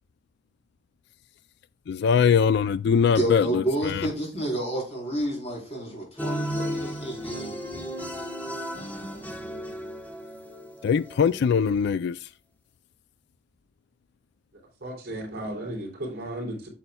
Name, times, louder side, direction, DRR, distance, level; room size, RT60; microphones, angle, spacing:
voice 1, 1.9-4.1 10.8-12.3, left 6 dB, 65° left, 0.3 m, -22 dB
voice 2, 3.1-7.6, right 1 dB, 35° left, 4.2 m, -30 dB
sound 1, 6.2-11.5, equal, 10° left, 1.2 m, -34 dB
voice 3, 14.8-16.7, right 1 dB, 55° right, 3.2 m, -34 dB
8.4 x 7.8 x 2.3 m
head